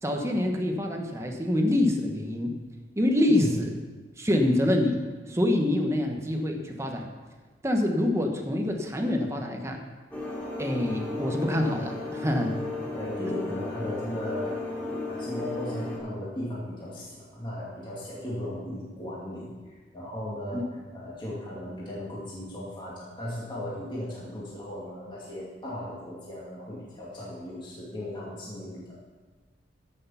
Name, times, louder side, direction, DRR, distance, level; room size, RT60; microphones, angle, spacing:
voice 1, 0.0-2.5 3.0-3.7 4.2-5.0 5.3-7.1 7.6-9.8 10.6-12.5 20.5-20.6, left 1 dB, 15° right, 2 dB, 1.2 m, -26 dB
sound 1, 10.1-16.0, left 2 dB, 10° left, 2.9 m, -34 dB
voice 2, 12.9-20.6 20.9-29.1, left 1 dB, 25° left, -7 dB, 2.3 m, -36 dB
14.5 x 6.6 x 5.6 m, 1.3 s
head